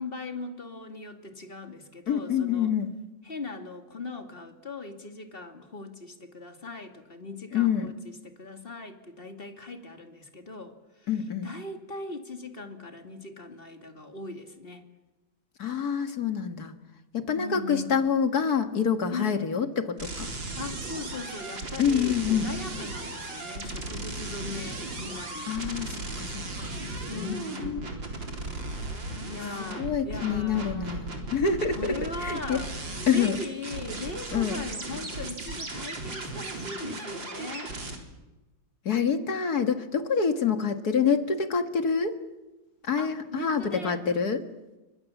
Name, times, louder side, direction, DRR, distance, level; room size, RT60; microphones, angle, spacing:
voice 1, 0.0-2.7 3.2-11.1 11.4-14.8 17.3-18.0 19.1-19.6 20.6-25.7 27.1-28.0 29.3-31.1 31.7-32.7 33.1-37.8 43.0-44.0, left 3 dB, 25° left, 6 dB, 2.5 m, -39 dB
voice 2, 2.1-2.9 7.5-7.9 11.1-11.5 15.6-16.7 17.1-20.3 21.8-22.5 25.5-26.7 27.1-27.9 29.8-31.9 32.2-32.6 33.1-33.4 34.3-34.6 38.9-42.2 42.8-44.5, left 6 dB, 50° left, 8 dB, 2.3 m, -27 dB
sound 1, 20.0-38.0, right 2 dB, 65° right, 4.7 m, -36 dB
29.5 x 25.0 x 7.3 m, 1.1 s
omnidirectional pair, 2.2 m